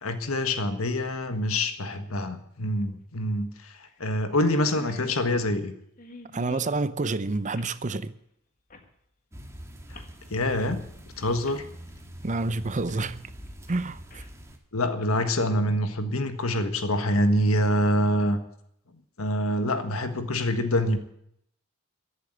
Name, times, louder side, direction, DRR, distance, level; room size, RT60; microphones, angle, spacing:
voice 1, 0.0-5.7 10.3-10.8 11.2-11.7 14.7-18.4 19.2-21.0, left 1 dB, 85° left, 1.6 m, -26 dB
sound 1, 2.8-2.9 3.2-3.3 3.9-4.1 4.3-4.4 4.6-6.8 7.5-7.8 8.7-8.9 9.9-10.2 11.0-11.1 11.4-11.6 12.9-13.1 13.5-14.4 15.0-15.2, left 2 dB, 40° left, 1.8 m, -47 dB
voice 2, 6.3-8.1 12.2-13.2 13.7-14.2, right 3 dB, 35° right, 0.7 m, -28 dB
sound 2, 9.3-14.6, equal, 15° right, 1.9 m, -44 dB
14.5 x 8.3 x 9.8 m
head